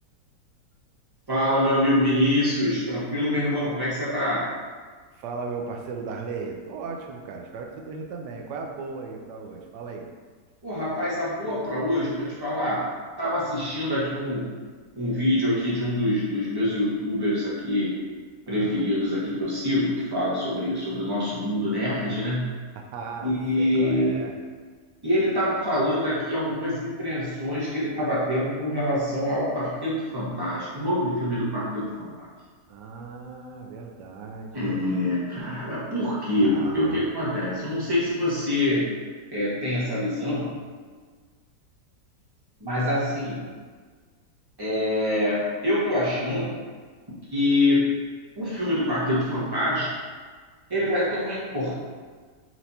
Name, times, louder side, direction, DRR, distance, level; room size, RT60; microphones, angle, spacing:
voice 1, 1.3-4.5 10.6-12.9 13.2-14.6 15.0-17.9 18.5-22.5 23.2-24.2 25.0-32.3 34.5-38.9 39.3-40.5 42.6-43.4 44.6-46.5 47.3-47.9 48.4-49.9 50.7-51.7, left 1 dB, 20° right, -9 dB, 0.8 m, -25 dB
voice 2, 5.1-10.1 18.5-18.8 22.7-23.3 23.6-24.3 32.7-34.9 36.4-37.0, right 4 dB, 75° right, 1 dB, 1.2 m, -36 dB
4.4 x 3.0 x 2.7 m, 1.5 s
omnidirectional pair, 1.9 m